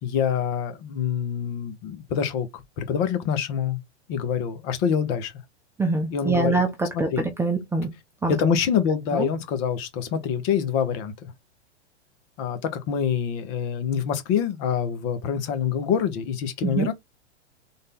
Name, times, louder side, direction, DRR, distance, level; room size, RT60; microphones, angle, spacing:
voice 1, 0.0-3.8 4.1-5.3 6.1-6.6 6.9-7.3 8.3-11.3 12.4-16.9, left 7 dB, 40° left, 1.2 m, -26 dB
voice 2, 5.8-7.9 8.2-8.4 9.1-9.3 16.6-16.9, right 3 dB, 5° right, 0.7 m, -24 dB
3.8 x 2.7 x 3.6 m
hypercardioid pair, 115°, 35 cm